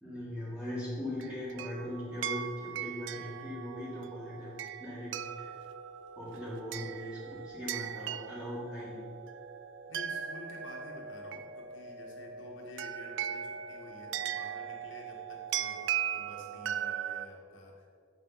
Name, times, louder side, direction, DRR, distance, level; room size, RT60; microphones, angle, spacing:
voice 1, 0.0-5.5 6.2-9.1, left 1 dB, 5° right, -8 dB, 2.0 m, -40 dB
sound 1, 1.2-17.3, right 9 dB, 80° right, 0.4 m, -39 dB
voice 2, 9.9-17.9, left 1 dB, 90° left, -1 dB, 1.8 m, -50 dB
8.9 x 7.5 x 4.1 m, 2.2 s
head